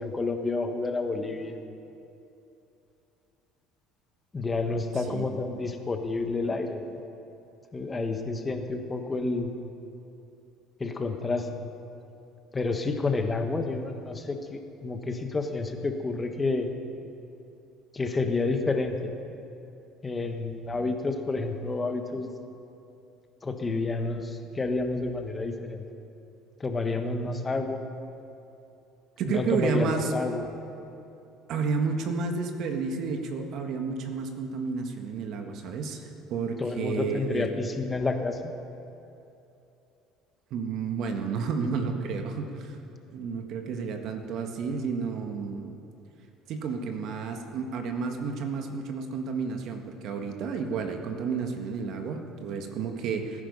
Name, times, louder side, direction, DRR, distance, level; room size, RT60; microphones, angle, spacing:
voice 1, 0.0-1.5 4.3-6.8 7.7-9.5 10.8-11.5 12.5-16.7 17.9-19.1 20.0-22.3 23.4-25.8 26.6-27.8 29.3-30.5 36.6-38.5, left 3 dB, 20° left, 5 dB, 1.3 m, -29 dB
voice 2, 4.9-5.3 29.2-30.1 31.5-37.5 40.5-42.8 43.1-45.7 46.5-53.4, right 5 dB, 60° right, 5 dB, 1.6 m, -31 dB
18.0 x 10.0 x 5.5 m, 2.8 s
supercardioid pair, 95°, 0 cm